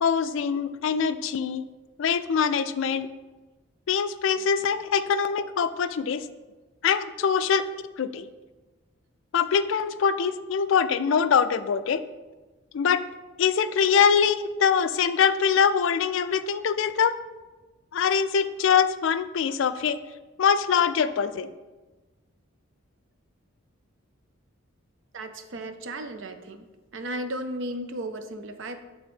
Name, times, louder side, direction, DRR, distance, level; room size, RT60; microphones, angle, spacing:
voice 1, 0.0-1.7 2.0-3.1 3.9-6.2 6.8-7.6 8.0-8.3 9.3-12.0 12.7-13.0 13.4-17.1 17.9-20.0 20.4-21.5, left 6 dB, 65° left, 12 dB, 0.3 m, -23 dB
voice 2, 25.1-26.7 26.9-28.8, right 1 dB, 60° right, 7 dB, 0.5 m, -35 dB
6.9 x 3.5 x 4.9 m, 1.2 s
head